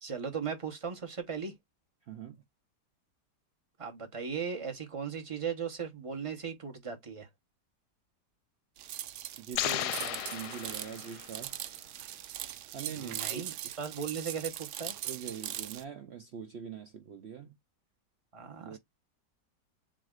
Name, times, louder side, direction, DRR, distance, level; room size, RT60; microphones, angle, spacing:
voice 1, 0.0-1.5 3.8-7.3 12.9-14.9 18.3-18.8, right 6 dB, 25° right, 0.9 m, -37 dB
voice 2, 2.0-2.4 9.4-11.7 12.7-13.6 15.0-17.6 18.6-18.8, right 7 dB, 85° right, 0.5 m, -43 dB
sound 1, 8.8-15.8, right 13 dB, 70° right, 0.9 m, -40 dB
sound 2, 9.5-11.4, left 13 dB, 75° left, 1.0 m, -35 dB
7.4 x 2.7 x 2.4 m
omnidirectional pair, 1.9 m